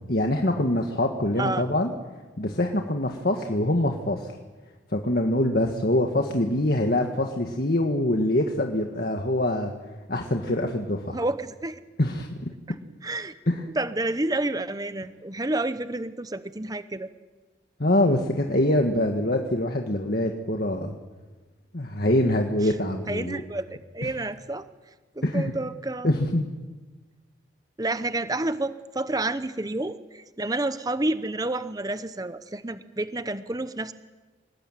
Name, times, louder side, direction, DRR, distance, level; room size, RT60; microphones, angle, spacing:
voice 1, 0.0-1.9 2.4-4.3 4.9-9.7 10.1-11.2 12.0-12.8 13.5-13.7 17.8-20.9 21.7-23.4 24.0-24.1 25.2-25.5 26.0-26.5, left 1 dB, 55° left, 3 dB, 1.8 m, -24 dB
voice 2, 11.1-11.8 13.0-13.3 13.8-17.1 23.1-24.7 25.2-26.1 27.8-33.9, right 2 dB, 20° right, 12 dB, 0.8 m, -29 dB
27.0 x 19.5 x 9.3 m, 1.3 s
head